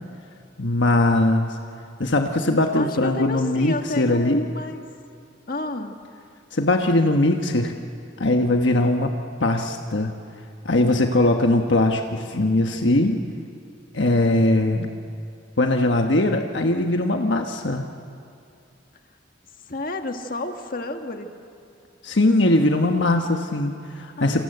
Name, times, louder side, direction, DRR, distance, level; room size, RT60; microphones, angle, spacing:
voice 1, 0.6-1.6 2.0-4.4 6.5-7.7 8.2-9.1 9.4-10.1 10.6-13.2 13.9-14.9 15.6-17.9 22.0-24.4, left 2 dB, 70° left, 4 dB, 1.3 m, -20 dB
voice 2, 2.7-4.8 5.5-6.0 19.7-21.3 24.2-24.4, left 2 dB, 45° left, 5 dB, 1.7 m, -31 dB
28.0 x 26.0 x 8.0 m, 2.5 s
head